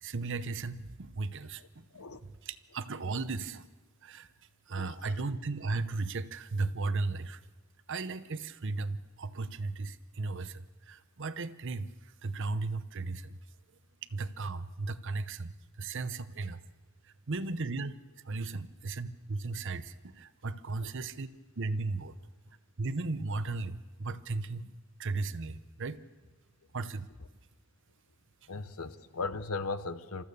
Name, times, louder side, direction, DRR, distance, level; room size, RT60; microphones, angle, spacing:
voice 1, 0.0-2.1 2.4-3.7 4.0-4.3 4.7-7.4 7.9-13.4 14.1-15.5 15.8-16.6 17.3-17.9 18.2-21.3 21.6-22.1 22.8-24.7 25.0-26.0 26.7-27.1, right 3 dB, 60° right, 0.8 m, -36 dB
voice 2, 4.7-5.1 28.5-30.2, left 3 dB, 80° left, 1.0 m, -37 dB
28.0 x 14.0 x 6.8 m
head